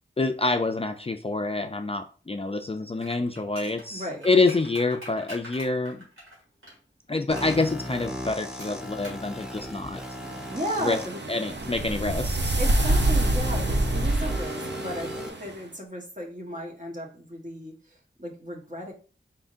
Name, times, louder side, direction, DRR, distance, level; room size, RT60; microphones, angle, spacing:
voice 1, 0.2-6.1 7.1-10.0 10.8-11.0 11.3-12.6, left 3 dB, 30° left, 7 dB, 0.4 m, -27 dB
sound 1, 3.0-6.8 7.4-7.7 8.6-9.3 9.5-9.6, equal, 75° right, 2.2 m, -43 dB
voice 2, 3.9-4.2 10.5-11.2 12.6-18.9, equal, 40° right, 0 dB, 1.3 m, -35 dB
sound 2, 7.3-11.1 11.8-11.9 12.8-15.3, equal, 5° right, 1.0 m, -35 dB
sound 3, 10.2-15.5, right 1 dB, 60° right, 0.7 m, -26 dB
4.3 x 3.6 x 2.6 m, 0.38 s
wide cardioid pair, 40°, 21 cm